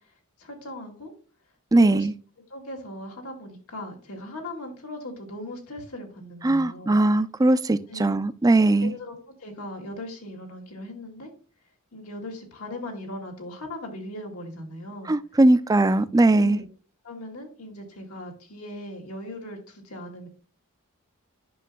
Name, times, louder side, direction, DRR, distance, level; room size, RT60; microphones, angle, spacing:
voice 1, 0.4-1.1 1.7-2.1 2.5-7.0 7.9-8.2 8.8-11.3 11.9-15.2 16.3-16.7 17.0-20.3, left 1 dB, 85° left, 2.4 m, -38 dB
voice 2, 1.7-2.1 6.4-8.9 15.1-16.6, right 2 dB, 15° right, 0.4 m, -20 dB
10.0 x 6.0 x 2.3 m
head